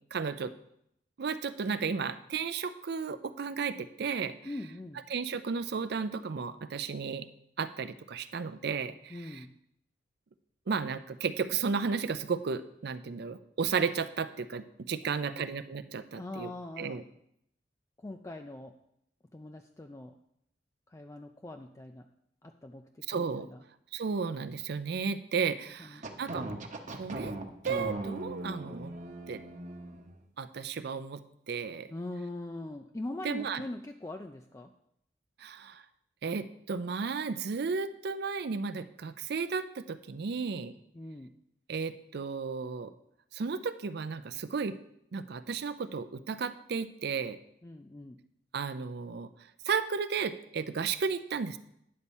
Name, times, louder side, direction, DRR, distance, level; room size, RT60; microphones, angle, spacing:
voice 1, 0.1-0.5 1.2-4.4 5.1-7.3 7.6-9.4 10.7-16.5 16.8-17.0 23.1-23.5 23.9-26.5 26.9-27.4 27.6-28.9 29.3-29.4 30.4-31.2 31.5-31.9 33.2-33.6 35.4-35.8 36.2-40.7 41.7-42.9 43.3-44.8 45.1-47.4 48.5-49.3 49.7-51.6, right 5 dB, 60° right, 12 dB, 0.5 m, -33 dB
voice 2, 4.5-5.0 9.1-9.5 15.0-15.5 16.1-17.0 18.0-18.7 19.3-20.2 20.9-22.1 22.4-23.6 25.8-26.0 31.9-34.7 40.9-41.3 47.6-48.2, left 2 dB, 15° left, 5 dB, 0.4 m, -42 dB
sound 1, 26.0-30.1, right 2 dB, 45° right, 0.9 m, -39 dB
9.5 x 4.2 x 7.1 m, 0.75 s
head